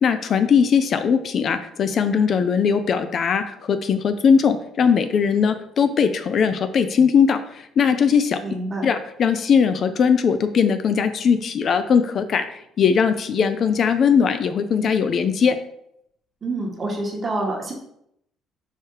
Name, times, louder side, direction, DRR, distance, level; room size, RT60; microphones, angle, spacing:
voice 1, 0.0-8.4 8.8-15.6, left 6 dB, 45° left, 10 dB, 0.4 m, -19 dB
voice 2, 8.4-8.9 16.4-17.7, right 2 dB, 25° right, 0 dB, 1.4 m, -27 dB
4.8 x 4.7 x 4.7 m, 0.76 s
cardioid pair, 130°, 0 cm